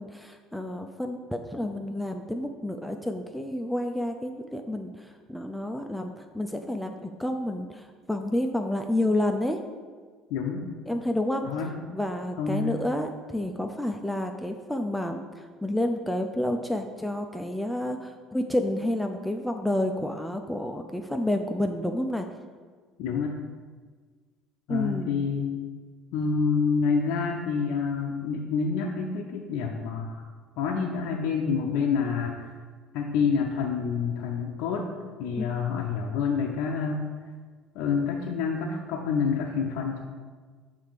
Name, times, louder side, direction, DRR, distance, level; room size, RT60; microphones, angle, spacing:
voice 1, 0.0-9.6 10.9-11.4 11.9-22.3 24.7-25.3 35.4-35.9, left 1 dB, ahead, 4 dB, 0.5 m, -30 dB
voice 2, 10.3-10.7 11.4-11.8 12.4-12.8 23.0-23.3 24.7-25.5 26.1-30.2 30.6-32.5 32.9-34.9 35.2-37.1 37.7-40.0, left 5 dB, 65° left, 0 dB, 0.5 m, -28 dB
6.5 x 3.4 x 4.9 m, 1.5 s
hypercardioid pair, 60°, 0 cm